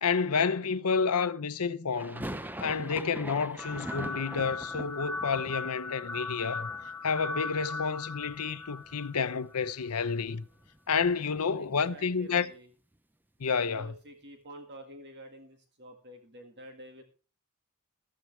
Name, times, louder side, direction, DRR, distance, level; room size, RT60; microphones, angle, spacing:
voice 1, 0.0-2.4 2.6-6.7 7.0-10.4 10.9-12.5 13.4-13.9, left 5 dB, 80° left, 0.8 m, -30 dB
sound 1, 1.9-7.9 8.1-9.0 9.3-9.4 9.6-11.8, right 1 dB, 10° right, 0.6 m, -43 dB
sound 2, 3.6-9.7, left 3 dB, 10° left, 2.1 m, -38 dB
voice 2, 11.1-12.7 13.6-17.0, right 1 dB, 50° right, 1.8 m, -49 dB
14.0 x 13.5 x 3.3 m
head